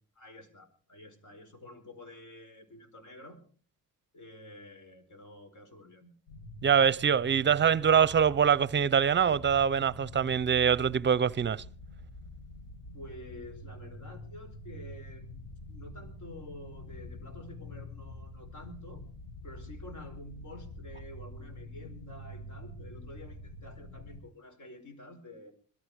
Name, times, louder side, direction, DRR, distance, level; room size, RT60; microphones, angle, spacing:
voice 1, 0.2-3.4 4.1-6.1 12.9-15.4 15.7-19.0 19.4-25.5, left 1 dB, 60° left, 4.6 m, -49 dB
sound 1, 6.3-24.2, left 1 dB, 80° left, 2.0 m, -46 dB
voice 2, 6.6-11.6, right 7 dB, 30° right, 0.7 m, -24 dB
21.5 x 13.5 x 4.8 m
cardioid pair, 80°, 35 cm